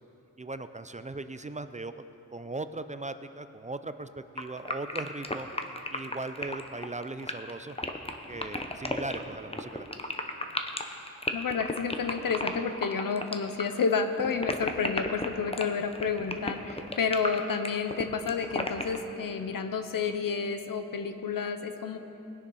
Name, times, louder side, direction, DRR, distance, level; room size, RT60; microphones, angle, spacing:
voice 1, 0.4-2.1 2.3-5.5 5.9-7.8 8.3-9.9, right 2 dB, 20° right, 11 dB, 0.4 m, -38 dB
sound 1, 4.4-19.0, left 2 dB, 20° left, 0.8 m, -33 dB
voice 2, 11.3-22.0, left 5 dB, 85° left, 8 dB, 0.8 m, -30 dB
19.5 x 6.7 x 5.5 m, 3.0 s
wide cardioid pair, 75°, 33 cm